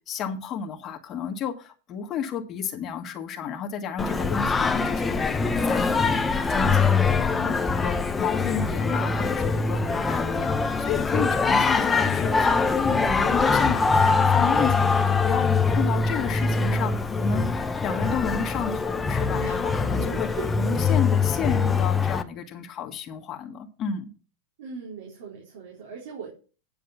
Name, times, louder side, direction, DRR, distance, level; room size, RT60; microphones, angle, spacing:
voice 1, 0.1-17.5 17.8-20.3 20.6-24.1, left 7 dB, 35° left, 3 dB, 1.6 m, -32 dB
Singing, 4.0-22.2, left 4 dB, 10° left, 0.7 m, -23 dB
voice 2, 20.1-20.9 24.6-26.3, right 6 dB, 75° right, -2 dB, 4.0 m, -39 dB
10.0 x 5.2 x 7.1 m, 0.35 s
supercardioid pair, 140°, 0 cm